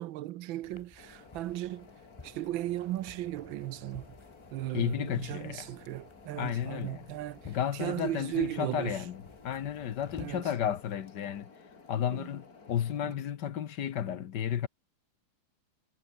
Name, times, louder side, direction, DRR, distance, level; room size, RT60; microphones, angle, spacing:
voice 1, 0.0-1.9 2.2-4.1 4.5-7.4 7.8-9.0 10.2-10.4 12.1-12.3 13.0-13.1, right 15 dB, 80° right, 1.5 m, -36 dB
sound 1, 0.6-10.9, left 3 dB, 25° left, 0.7 m, -55 dB
sound 2, 1.0-13.0, left 4 dB, 50° left, 3.2 m, -55 dB
voice 2, 4.7-5.7 6.3-7.1 7.5-11.5 11.9-14.7, left 9 dB, 65° left, 1.6 m, -33 dB
omnidirectional pair, 2.1 m